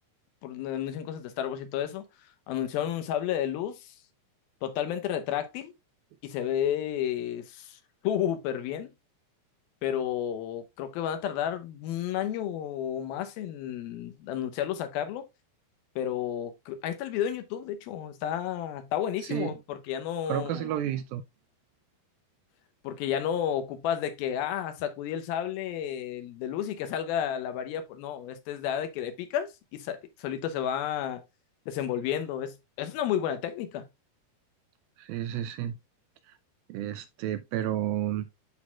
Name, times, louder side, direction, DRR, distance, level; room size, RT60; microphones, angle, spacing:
voice 1, 0.4-2.1 2.5-3.9 4.6-5.7 6.2-8.9 9.8-15.3 16.0-20.7 22.8-31.2 31.7-33.9, left 10 dB, 75° left, 2.6 m, -31 dB
voice 2, 19.2-19.5 20.3-21.2 35.0-35.8 36.3-36.4 36.7-38.3, right 11 dB, 80° right, 2.3 m, -31 dB
11.5 x 4.0 x 2.3 m
omnidirectional pair, 4.5 m